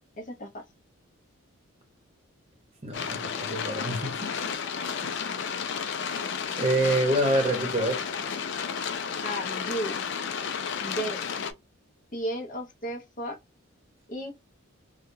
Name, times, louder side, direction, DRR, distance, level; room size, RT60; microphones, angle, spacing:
voice 1, 0.2-0.6 9.2-10.0 10.8-11.2 12.1-13.4 14.1-14.3, right 1 dB, 35° left, 0.8 m, -34 dB
voice 2, 2.8-4.4 6.6-8.0, right 1 dB, 30° right, 0.9 m, -26 dB
sound 1, 2.9-11.5, left 6 dB, 55° left, 0.4 m, -32 dB
3.3 x 2.2 x 2.6 m
head